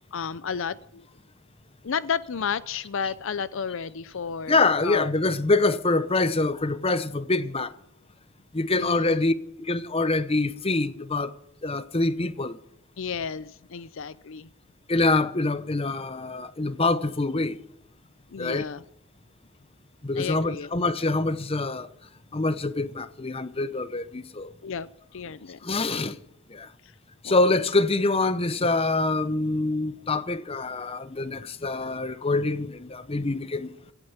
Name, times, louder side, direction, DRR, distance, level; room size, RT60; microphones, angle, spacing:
voice 1, 0.1-1.1 1.8-5.1 8.7-9.2 13.0-14.5 18.3-18.8 20.2-20.7 24.6-25.6 26.8-26.9 27.2-27.3, left 6 dB, 60° left, 0.5 m, -32 dB
voice 2, 4.5-7.7 8.5-9.3 9.7-11.3 11.6-12.6 14.9-17.6 18.4-18.6 20.0-21.9 22.3-24.5 25.6-26.2 26.5-26.7 27.2-33.7, left 2 dB, 25° left, 0.8 m, -25 dB
17.0 x 12.5 x 5.8 m
head